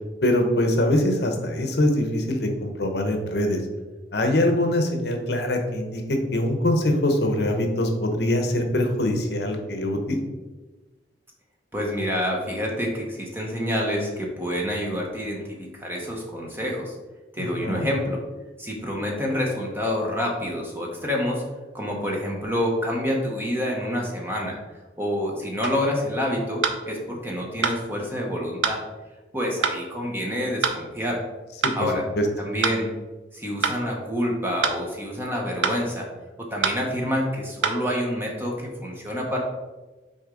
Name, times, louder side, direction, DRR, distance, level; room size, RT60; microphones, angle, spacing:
voice 1, 0.2-3.6 4.1-10.2 17.4-17.9 31.6-31.9 32.1-32.3, left 1 dB, 65° left, 4 dB, 0.9 m, -23 dB
voice 2, 11.7-16.9 17.3-18.2 18.6-21.4 21.7-24.6 25.0-28.8 29.3-31.2 31.7-32.0 32.4-32.9 33.3-36.1 36.4-39.4, equal, 10° right, -1 dB, 1.0 m, -27 dB
sound 1, 25.6-25.8 26.6-26.8 27.6-27.8 28.6-28.8 29.6-29.8 30.6-30.8 31.6-31.8 32.6-32.8 33.6-33.8 34.6-34.8 35.6-35.8 36.6-36.8 37.6-37.8, right 5 dB, 85° right, 0.6 m, -24 dB
6.3 x 4.3 x 3.8 m, 1.2 s
head